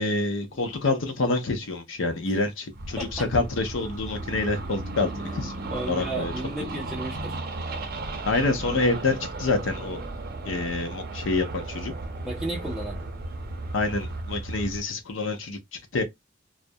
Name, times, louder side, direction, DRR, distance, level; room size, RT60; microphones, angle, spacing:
voice 1, 0.0-5.5 5.9-6.3 8.2-10.0 10.4-11.9 13.7-16.0, left 3 dB, 75° left, 0.6 m, -27 dB
sound 1, 2.7-14.8, right 2 dB, 50° right, 0.6 m, -35 dB
voice 2, 3.0-3.3 5.7-7.4 12.2-13.0, right 1 dB, ahead, 0.5 m, -33 dB
2.3 x 2.0 x 2.6 m
head